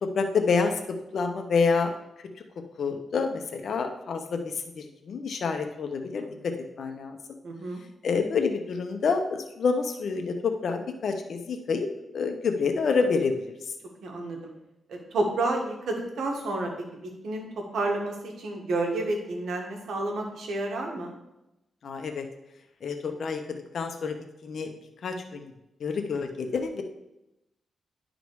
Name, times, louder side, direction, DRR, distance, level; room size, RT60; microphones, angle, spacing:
voice 1, 0.0-1.9 2.2-2.3 2.8-7.2 8.0-11.9 12.1-13.7 21.8-22.3 22.8-24.2 24.4-24.7 25.0-25.5 25.8-26.8, left 5 dB, 65° left, 5 dB, 0.9 m, -28 dB
voice 2, 7.4-7.8 14.0-14.5 14.9-16.7 17.0-21.1, right 2 dB, 85° right, 1 dB, 1.6 m, -30 dB
10.5 x 3.9 x 4.7 m, 0.91 s
cardioid pair, 95°, 0 cm